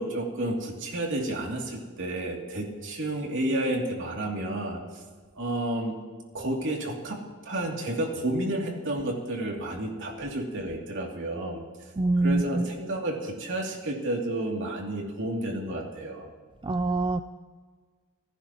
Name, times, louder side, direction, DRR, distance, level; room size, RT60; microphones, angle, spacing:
voice 1, 0.0-4.8 5.4-5.9 6.3-11.6 12.2-16.2, right 1 dB, 65° right, 0 dB, 2.9 m, -31 dB
voice 2, 12.0-12.7 16.6-17.2, right 2 dB, 25° right, 9 dB, 0.4 m, -25 dB
27.5 x 14.5 x 3.1 m, 1.5 s
head